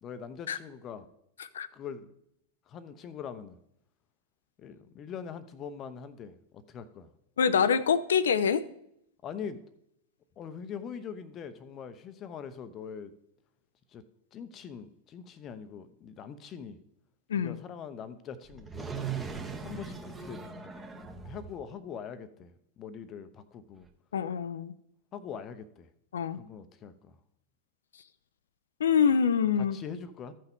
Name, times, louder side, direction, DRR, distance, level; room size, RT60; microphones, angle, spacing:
voice 1, 0.0-1.1 1.7-2.1 2.7-3.6 4.6-7.1 9.2-9.6 10.4-13.1 13.9-14.0 14.3-16.8 17.3-18.9 19.6-20.4 21.2-23.9 25.1-25.9 26.3-27.2 29.7-30.3, left 7 dB, 30° left, 13 dB, 0.8 m, -42 dB
voice 2, 7.4-8.6 17.3-17.6 24.1-24.7 26.1-26.4 28.8-29.8, left 7 dB, 65° left, 16 dB, 0.6 m, -25 dB
sound 1, 18.5-21.6 23.9-24.0, right 6 dB, 15° right, 1.2 m, -39 dB
14.5 x 5.7 x 3.6 m, 0.74 s
figure-of-eight pair, 90°, 0 cm